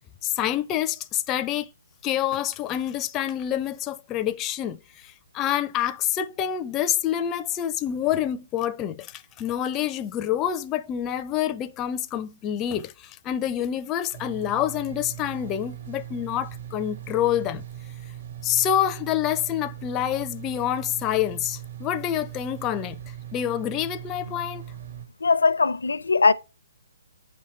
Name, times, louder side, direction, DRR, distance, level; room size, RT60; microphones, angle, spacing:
voice 1, 0.2-1.7 2.0-17.6 18.4-23.0 23.3-24.6, left 10 dB, 20° left, 0.4 m, -27 dB
sound 1, 14.1-25.1, right 10 dB, 60° right, 1.7 m, -39 dB
voice 2, 25.2-26.3, left 4 dB, 85° left, 0.5 m, -20 dB
7.8 x 5.6 x 3.1 m
hypercardioid pair, 150°, 0 cm